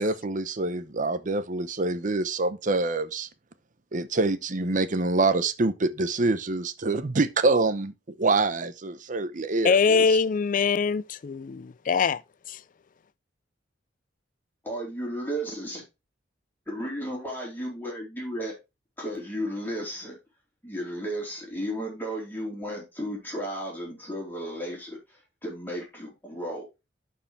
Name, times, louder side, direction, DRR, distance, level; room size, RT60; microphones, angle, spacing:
voice 1, 0.0-3.3 3.9-10.0, right 3 dB, 45° right, 0.8 m, -26 dB
voice 2, 9.6-12.2 12.5-12.6, left 5 dB, 45° left, 0.4 m, -23 dB
voice 3, 14.6-15.8 16.7-18.5 19.0-20.2 20.6-25.0 25.4-26.6, equal, 10° left, 3.9 m, -34 dB
11.5 x 4.7 x 3.3 m
head